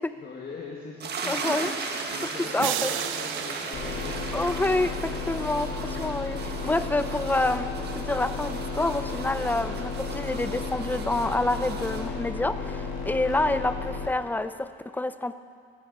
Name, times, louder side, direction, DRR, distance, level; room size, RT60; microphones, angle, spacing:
voice 1, 0.1-1.7 2.1-4.9 5.4-5.8, left 4 dB, 50° left, -2 dB, 1.7 m, -42 dB
sound 1, 1.0-12.1, right 4 dB, 55° right, 1.5 m, -36 dB
voice 2, 1.3-1.7 2.5-2.9 4.3-4.9 5.3-5.7 6.0-15.3, left 2 dB, 10° left, 12 dB, 0.6 m, -27 dB
sound 2, 2.6-4.9, right 13 dB, 85° right, 0.4 m, -34 dB
sound 3, 3.7-14.1, left 5 dB, 75° left, 1.8 m, -33 dB
15.5 x 14.0 x 4.0 m, 2.1 s
cardioid pair, 90°, 20 cm